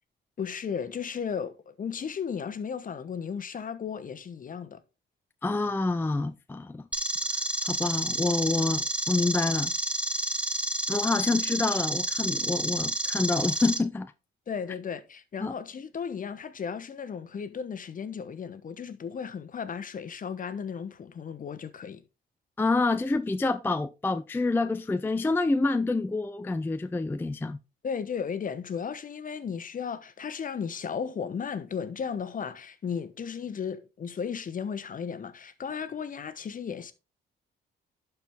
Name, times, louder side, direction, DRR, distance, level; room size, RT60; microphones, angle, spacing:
voice 1, 0.4-4.8 14.5-22.0 27.8-36.9, left 6 dB, 45° left, 1.0 m, -35 dB
voice 2, 5.4-6.8 7.6-9.7 10.9-14.1 15.4-15.5 22.6-27.6, left 3 dB, 10° left, 0.4 m, -27 dB
sound 1, 6.9-13.8, right 1 dB, 5° right, 1.0 m, -30 dB
11.5 x 4.6 x 3.6 m
cardioid pair, 90°, 20 cm